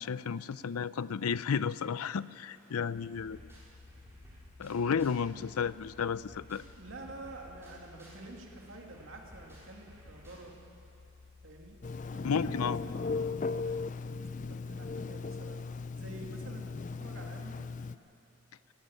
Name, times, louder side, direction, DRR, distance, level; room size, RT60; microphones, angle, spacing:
voice 1, 0.0-3.4 4.6-6.6 12.2-12.8, left 6 dB, 90° left, 17 dB, 0.5 m, -32 dB
sound 1, 2.6-5.3 5.6-10.7, equal, 10° right, 5.5 m, -57 dB
sound 2, 3.1-12.9, left 3 dB, 70° left, 5.0 m, -56 dB
voice 2, 6.8-10.6 11.4-11.8 12.1-14.1 14.4-15.6 16.0-17.6, right 2 dB, 65° right, 1 dB, 2.7 m, -49 dB
Telephone, 11.8-18.0, left 4 dB, 35° left, 0.4 m, -37 dB
18.0 x 16.0 x 9.0 m, 2.8 s
head